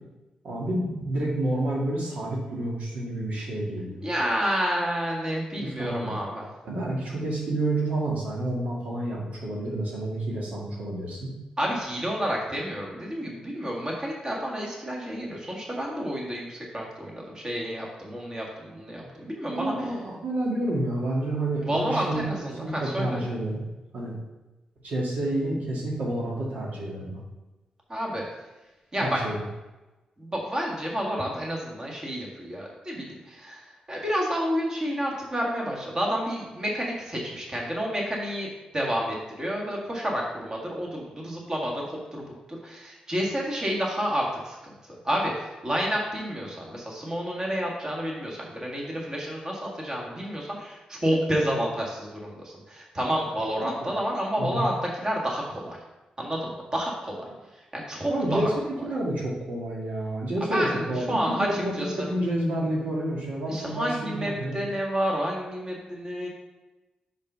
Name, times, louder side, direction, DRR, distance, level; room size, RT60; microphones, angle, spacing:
voice 1, 0.4-4.1 5.6-6.1 6.6-11.3 19.0-19.1 19.5-22.3 22.6-23.6 23.9-24.2 24.8-27.2 29.0-29.4 53.6-53.9 54.4-54.7 58.1-64.6, right 1 dB, 75° right, -3 dB, 1.9 m, -29 dB
voice 2, 4.0-6.5 11.6-19.7 21.7-23.2 27.9-28.2 28.9-29.2 30.2-33.6 33.9-41.8 42.1-44.6 45.0-55.8 56.2-57.2 57.7-58.5 60.5-62.1 63.5-66.3, equal, 25° right, -2 dB, 1.8 m, -30 dB
5.3 x 5.3 x 5.6 m, 1.1 s
cardioid pair, 100°, 2 cm